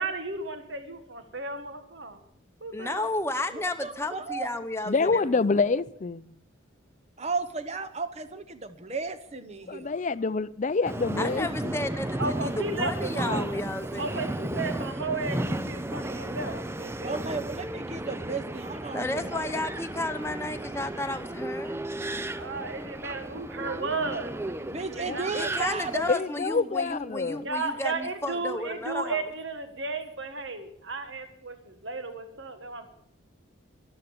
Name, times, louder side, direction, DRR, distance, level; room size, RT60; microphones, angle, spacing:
voice 1, 0.0-2.2 2.6-3.1 12.2-13.5 14.0-17.2 22.3-25.3 27.4-33.0, right 3 dB, 65° right, 1.5 m, -34 dB
voice 2, 2.7-5.6 11.2-14.3 18.9-21.8 25.3-29.2, left 2 dB, 15° left, 0.9 m, -33 dB
voice 3, 3.8-4.5 7.2-10.0 17.0-19.7 24.7-26.1, right 4 dB, 35° right, 1.0 m, -34 dB
voice 4, 4.9-6.3 9.7-11.8 25.1-25.2 26.1-27.5, left 4 dB, 35° left, 0.5 m, -27 dB
Subway metro underground, 10.9-26.1, right 1 dB, 10° right, 0.5 m, -34 dB
12.5 x 12.0 x 7.1 m
head